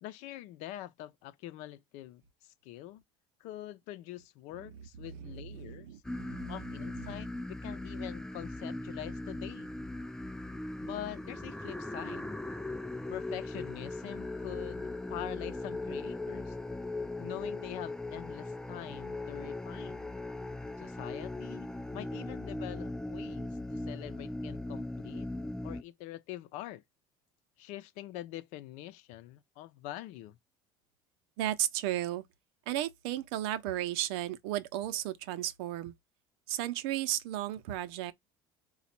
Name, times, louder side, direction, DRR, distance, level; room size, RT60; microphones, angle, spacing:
voice 1, 0.0-3.0 3.4-6.0 6.5-9.7 10.8-12.3 13.1-16.6 17.2-20.1 20.8-25.3 25.6-26.8 27.6-30.4, left 14 dB, 70° left, 0.7 m, -44 dB
voice 2, 5.1-7.2 31.4-32.2 32.7-35.9 36.5-38.1, right 13 dB, 80° right, 0.7 m, -35 dB
sound 1, 6.0-25.8, left 2 dB, 5° left, 0.4 m, -39 dB
4.1 x 2.4 x 4.4 m
supercardioid pair, 95°, 13 cm